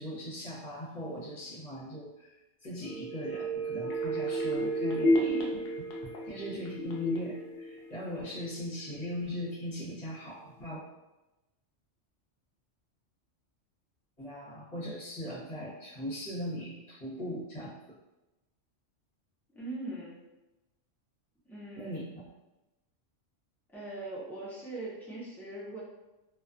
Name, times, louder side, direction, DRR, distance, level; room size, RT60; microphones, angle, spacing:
voice 1, 0.0-5.5 6.2-10.8 14.2-18.0 21.8-22.2, left 1 dB, 40° left, -11 dB, 0.9 m, -39 dB
sound 1, 2.8-8.5 8.9-9.0, right 1 dB, 60° left, 0.5 m, -32 dB
voice 2, 19.5-20.2 21.4-22.0 23.7-25.8, right 2 dB, 5° left, -8 dB, 0.3 m, -41 dB
2.3 x 2.3 x 2.4 m, 1.0 s
omnidirectional pair, 1.3 m